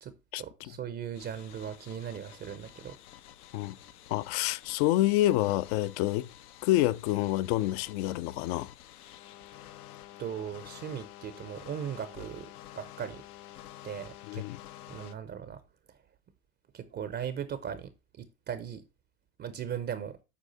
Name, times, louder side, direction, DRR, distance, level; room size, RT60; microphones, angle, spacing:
voice 1, 0.0-3.0 10.2-13.2 13.8-14.5 14.9-15.6 15.9-16.0 16.7-17.9 18.2-18.8 19.4-20.2, right 8 dB, 25° right, 0.6 m, -38 dB
sound 1, 1.1-15.2, left 12 dB, 75° left, 0.8 m, -50 dB
voice 2, 4.1-6.3 6.6-8.7 14.3-14.6, left 15 dB, 45° left, 0.5 m, -27 dB
8.4 x 4.9 x 4.0 m
hypercardioid pair, 100°, 46 cm